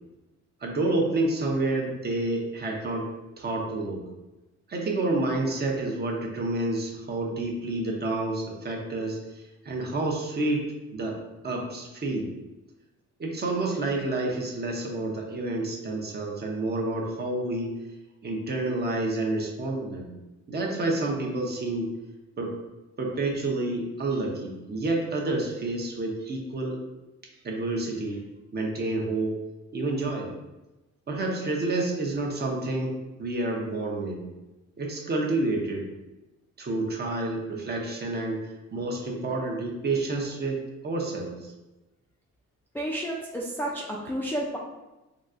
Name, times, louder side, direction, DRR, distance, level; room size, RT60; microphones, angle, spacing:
voice 1, 0.6-3.1 3.4-4.0 4.7-12.3 13.2-17.7 18.2-20.1 20.5-22.0 22.4-22.6 23.0-26.8 27.4-28.3 28.5-29.4 29.7-30.3 31.1-34.2 34.8-35.9 36.6-38.4 38.7-41.5, right 2 dB, 35° right, -1 dB, 0.7 m, -29 dB
voice 2, 42.7-44.6, right 1 dB, 5° left, -4 dB, 0.3 m, -31 dB
3.9 x 2.3 x 2.5 m, 1.1 s
cardioid pair, 90°, 30 cm